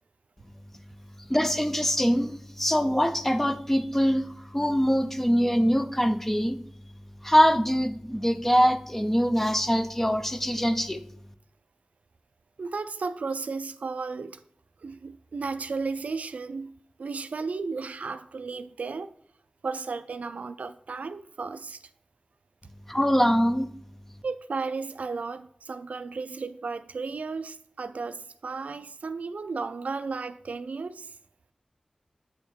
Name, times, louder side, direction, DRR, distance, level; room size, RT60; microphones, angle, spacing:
voice 1, 1.3-6.6 7.2-11.0 22.9-23.7, equal, 10° left, 0.6 m, -23 dB
voice 2, 12.6-14.4 14.8-19.1 19.6-21.8 24.2-31.2, right 4 dB, 80° right, 0.3 m, -34 dB
8.0 x 3.5 x 4.4 m
wide cardioid pair, 60°, 2 cm